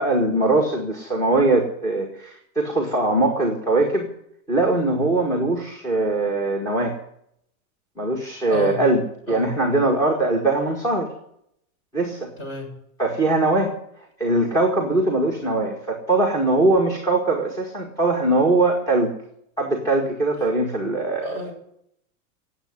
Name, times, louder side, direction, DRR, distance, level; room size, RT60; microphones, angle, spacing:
voice 1, 0.0-4.1 4.5-7.0 8.0-9.0 9.3-11.1 11.9-12.3 13.0-13.7 14.2-19.1 19.6-21.4, right 2 dB, 10° left, 2 dB, 1.9 m, -21 dB
voice 2, 8.5-8.8 9.3-9.5 12.4-12.7 21.2-21.5, left 2 dB, 30° left, 3 dB, 6.8 m, -31 dB
17.5 x 8.5 x 9.7 m, 0.73 s
supercardioid pair, 170°, 42 cm